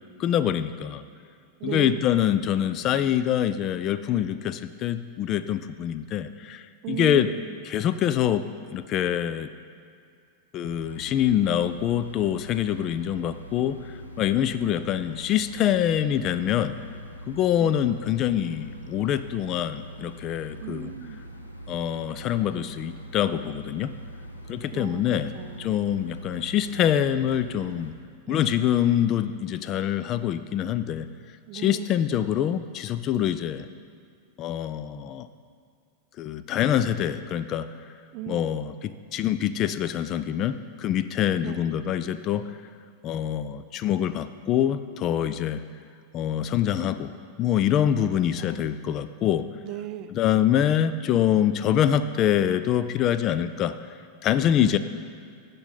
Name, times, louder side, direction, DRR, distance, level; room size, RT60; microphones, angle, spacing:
voice 1, 0.2-1.0 1.6-7.3 7.7-8.4 8.7-9.5 10.5-13.8 14.2-16.8 17.3-20.9 21.7-23.9 24.5-25.3 25.6-27.9 28.3-31.1 31.5-33.7 34.4-35.3 36.2-37.7 38.3-42.4 43.0-45.6 46.1-47.1 47.4-49.5 50.1-53.7 54.2-54.8, left 10 dB, 35° left, 12 dB, 0.3 m, -25 dB
voice 2, 1.6-2.1 6.8-7.6 14.6-14.7 17.5-17.8 20.6-21.2 24.7-25.0 25.3-25.9 28.3-28.5 31.5-32.0 38.1-38.4 41.4-41.6 48.4-48.6 49.6-50.4 54.6-54.8, right 12 dB, 40° right, 10 dB, 0.5 m, -36 dB
sound 1, 10.6-27.9, equal, 90° left, 0.8 m, -43 dB
15.0 x 5.3 x 3.9 m, 2.3 s
figure-of-eight pair, 90°, 0 cm